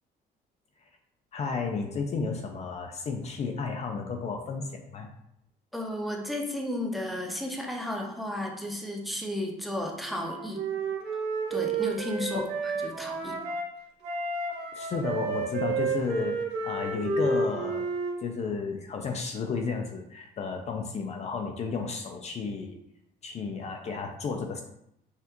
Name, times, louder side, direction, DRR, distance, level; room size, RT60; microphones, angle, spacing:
voice 1, 1.3-5.1 12.3-12.6 14.7-17.9 18.2-22.8 23.2-24.6, left 4 dB, 40° left, 4 dB, 0.5 m, -33 dB
voice 2, 5.7-10.6 11.5-12.5 12.8-13.4, left 1 dB, ahead, 1 dB, 0.7 m, -33 dB
Wind instrument woodwind instrument, 10.1-13.7 14.0-18.2, right 4 dB, 75° right, 1.2 m, -31 dB
5.6 x 2.4 x 2.9 m, 0.77 s
cardioid pair, 110°, 17 cm